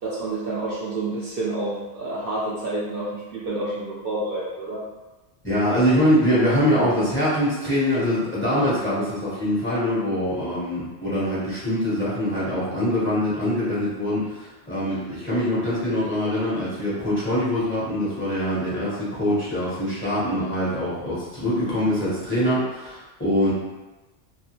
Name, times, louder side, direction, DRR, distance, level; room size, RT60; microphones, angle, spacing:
voice 1, 0.0-4.8, right 2 dB, 60° right, -6 dB, 0.7 m, -29 dB
voice 2, 5.4-23.5, equal, 10° left, -10 dB, 0.8 m, -23 dB
2.4 x 2.2 x 2.9 m, 1.1 s
omnidirectional pair, 1.1 m